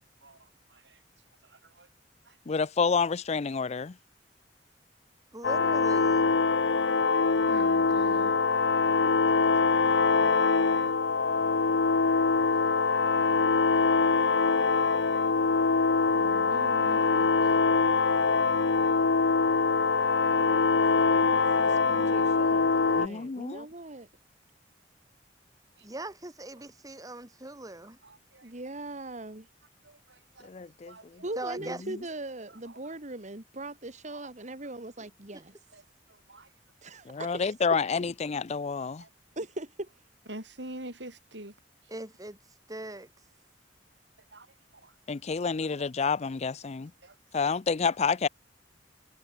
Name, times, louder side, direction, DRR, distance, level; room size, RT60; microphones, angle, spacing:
voice 1, 1.5-1.9 2.3-2.4 7.5-8.3 10.8-11.4 12.0-12.2 16.1-17.3 20.7-21.1 21.4-21.5 28.0-28.5 29.8-30.5 30.9-31.3 34.1-34.3 35.7-35.8 36.3-36.5 39.0-39.1 40.3-41.5 44.3-44.5 44.8-44.9 45.6-45.7 47.0-47.1, right 1 dB, 75° right, 7.9 m, -46 dB
voice 2, 2.5-3.9 23.0-23.7 30.4-31.2 31.9-32.0 37.1-39.0 45.1-46.9 47.3-48.3, left 5 dB, 40° left, 0.5 m, -29 dB
voice 3, 5.3-6.3 25.8-28.0 31.4-31.8 35.3-35.4 41.9-42.4 42.7-43.1, right 2 dB, 20° right, 2.4 m, -40 dB
sound 1, 5.4-23.1, left 4 dB, 85° left, 0.9 m, -24 dB
voice 4, 20.3-24.1 28.4-29.5 31.2-35.5 36.8-37.5 39.4-39.9, right 2 dB, 40° right, 2.4 m, -40 dB
head